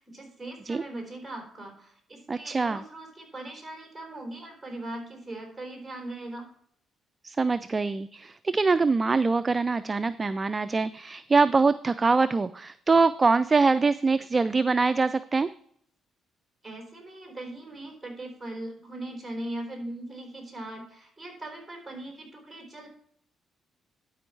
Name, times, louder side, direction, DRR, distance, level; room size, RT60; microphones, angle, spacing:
voice 1, 0.0-6.5 16.6-22.9, right 1 dB, 10° right, 2 dB, 3.8 m, -40 dB
voice 2, 2.3-2.8 7.2-15.5, right 4 dB, 25° right, 14 dB, 0.3 m, -24 dB
12.0 x 5.2 x 4.6 m, 0.66 s
cardioid pair, 90°, 0 cm